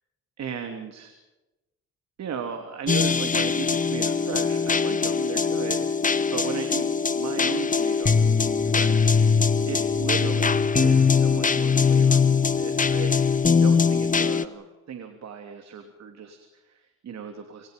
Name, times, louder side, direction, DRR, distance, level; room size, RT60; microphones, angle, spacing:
voice 1, 0.4-1.1 2.2-5.9 6.3-6.9 7.1-8.4 8.7-9.1 9.6-13.2 13.6-17.7, right 7 dB, 60° right, 5 dB, 3.0 m, -36 dB
sound 1, 2.9-14.4, left 5 dB, 25° left, 1.3 m, -22 dB
28.0 x 27.0 x 5.3 m, 1.0 s
cardioid pair, 90°, 30 cm